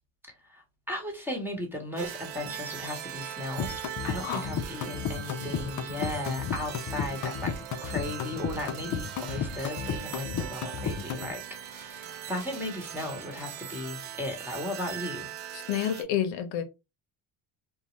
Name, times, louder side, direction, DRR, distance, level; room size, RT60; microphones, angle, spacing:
voice 1, 0.4-7.5 7.8-15.3, left 1 dB, 5° right, 1.1 m, -36 dB
sound 1, 2.0-16.0, right 10 dB, 80° right, 0.7 m, -40 dB
sound 2, 3.6-11.3, left 7 dB, 45° left, 0.5 m, -33 dB
voice 2, 15.7-16.6, left 9 dB, 80° left, 0.7 m, -29 dB
2.7 x 2.1 x 3.1 m
cardioid pair, 95°, 44 cm